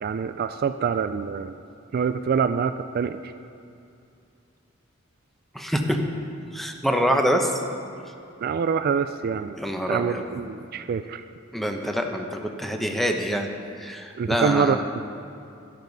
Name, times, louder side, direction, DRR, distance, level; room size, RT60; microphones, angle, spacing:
voice 1, 0.0-1.5 1.9-3.3 8.4-9.6 9.9-11.2 14.2-15.0, right 6 dB, 50° right, 10 dB, 0.3 m, -25 dB
voice 2, 5.5-6.0 6.5-7.5 9.6-10.2 11.5-13.5 13.8-14.8, equal, ahead, 3 dB, 0.8 m, -25 dB
12.5 x 12.0 x 4.0 m, 2.6 s
head